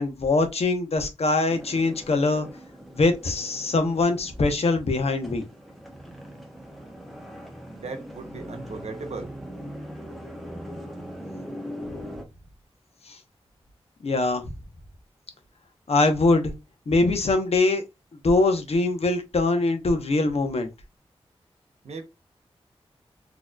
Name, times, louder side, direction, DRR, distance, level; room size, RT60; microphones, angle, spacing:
voice 1, 0.0-2.5 2.9-5.4 13.1-13.2 14.0-14.4 15.9-16.5 16.9-17.8 18.2-20.7, left 3 dB, 70° left, 0.8 m, -22 dB
sound 1, 1.5-12.2, equal, ahead, 1.0 m, -41 dB
voice 2, 7.7-9.3 21.8-22.0, right 4 dB, 80° right, 0.8 m, -37 dB
4.0 x 2.9 x 2.3 m
cardioid pair, 50°, 11 cm